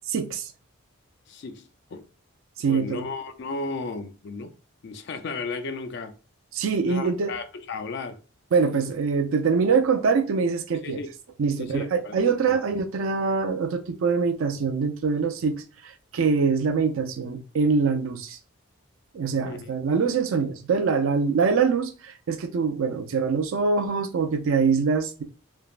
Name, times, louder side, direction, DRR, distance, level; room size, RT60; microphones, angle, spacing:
voice 1, 0.1-0.5 2.6-3.1 6.5-7.3 8.5-11.0 11.4-18.4 19.1-25.2, right 5 dB, 65° right, 0.4 m, -24 dB
voice 2, 1.3-2.0 2.7-4.5 4.8-6.1 6.8-8.2 10.8-11.1 11.6-12.2 12.5-12.6 19.5-19.7, left 3 dB, 50° left, 0.4 m, -34 dB
3.3 x 2.0 x 2.3 m
head